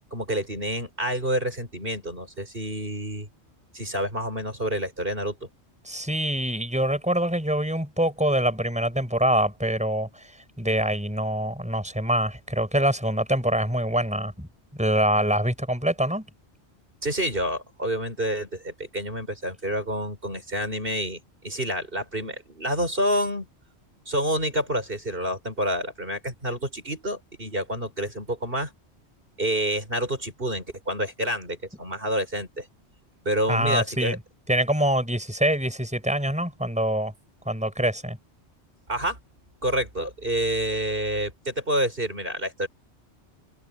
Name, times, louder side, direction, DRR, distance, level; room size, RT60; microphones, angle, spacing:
voice 1, 0.1-3.3 3.7-5.4 17.0-23.5 24.1-28.7 29.4-32.7 33.3-34.2 38.9-39.2 39.6-42.7, equal, 50° right, 5.8 m, -28 dB
voice 2, 5.8-14.5 14.8-16.3 33.5-34.2 34.5-37.1 37.5-38.2, right 1 dB, 5° right, 5.8 m, -25 dB
omnidirectional pair, 1.2 m